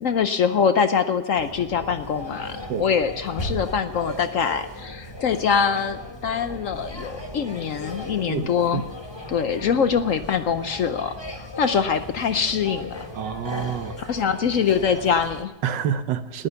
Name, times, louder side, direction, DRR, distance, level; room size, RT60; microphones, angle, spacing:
voice 1, 0.0-8.8 9.3-13.1 14.0-15.5, left 6 dB, 60° left, 0.9 m, -24 dB
sound 1, 1.4-15.4, left 1 dB, 15° left, 1.4 m, -36 dB
voice 2, 8.3-8.8 13.1-14.1 15.6-16.5, right 8 dB, 85° right, 1.6 m, -28 dB
20.0 x 9.6 x 6.9 m
omnidirectional pair, 1.9 m